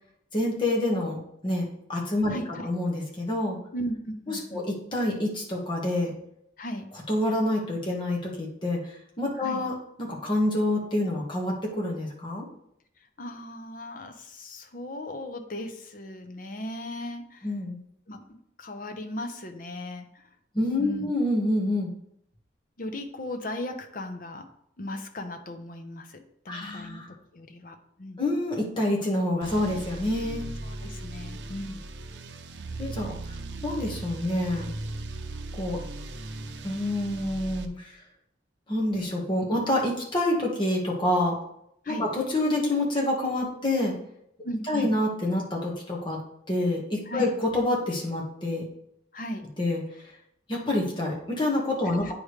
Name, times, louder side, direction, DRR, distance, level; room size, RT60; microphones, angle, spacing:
voice 1, 0.3-3.6 4.3-6.1 7.1-8.9 9.2-12.5 17.4-17.8 20.5-21.9 26.5-27.1 28.2-30.4 32.8-33.1 33.6-34.7 35.6-35.8 36.6-38.0 38.7-41.4 41.9-43.9 44.7-46.2 46.5-48.7 49.6-49.8 50.5-52.1, left 1 dB, 25° left, -1 dB, 1.5 m, -27 dB
voice 2, 2.3-2.7 3.7-4.7 6.6-6.9 9.4-9.7 13.2-17.5 18.1-20.1 20.8-21.1 22.8-24.4 24.8-28.2 30.6-31.9 41.8-42.1 44.4-44.9 47.1-47.3 49.1-49.4 51.8-52.1, left 1 dB, 50° left, 5 dB, 0.8 m, -37 dB
sound 1, 29.4-37.7, right 2 dB, 80° right, 0.6 m, -38 dB
8.8 x 5.0 x 3.2 m, 0.73 s
head